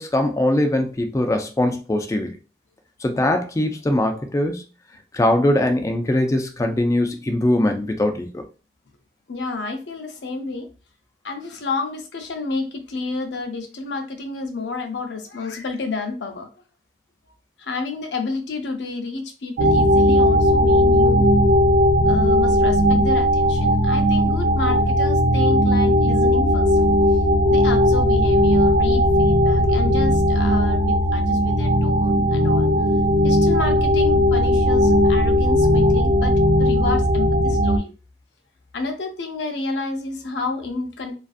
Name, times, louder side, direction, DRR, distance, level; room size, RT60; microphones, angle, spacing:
voice 1, 0.0-2.4 3.0-4.6 5.1-8.4, left 1 dB, 15° left, 0.3 m, -21 dB
voice 2, 9.3-10.7 11.2-16.5 17.6-21.3 22.0-26.8 27.5-32.7 33.2-36.3 36.6-37.9 38.7-41.2, left 3 dB, 75° left, 0.6 m, -30 dB
sound 1, 19.6-37.8, equal, 80° right, 0.4 m, -17 dB
2.5 x 2.4 x 2.4 m
head